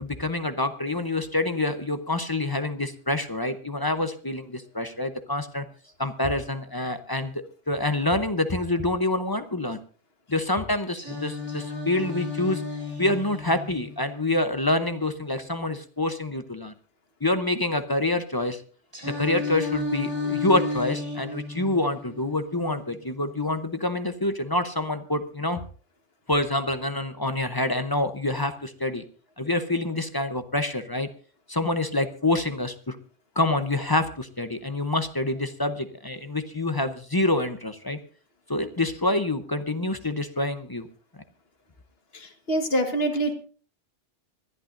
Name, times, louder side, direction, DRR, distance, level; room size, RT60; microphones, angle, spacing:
voice 1, 0.0-5.6 6.0-9.8 10.3-12.6 13.0-16.7 17.2-18.6 19.0-25.6 26.3-29.0 29.4-31.1 31.5-33.0 33.4-38.0 38.5-40.9, left 2 dB, 25° left, 9 dB, 0.7 m, -27 dB
Singing, 11.0-15.0 18.9-23.0, left 4 dB, 20° right, 4.1 m, -33 dB
voice 2, 42.5-43.3, right 1 dB, 60° left, 5 dB, 1.8 m, -24 dB
26.0 x 11.5 x 2.6 m, 0.40 s
omnidirectional pair, 1.2 m